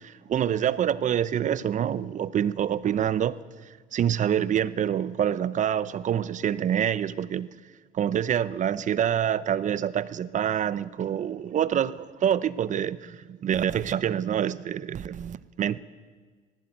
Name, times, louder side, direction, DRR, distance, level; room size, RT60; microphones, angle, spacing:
voice 1, 0.0-3.4 3.9-7.6 7.9-15.8, right 9 dB, 45° right, 0.8 m, -26 dB
19.0 x 15.5 x 9.1 m
cardioid pair, 110°, 17 cm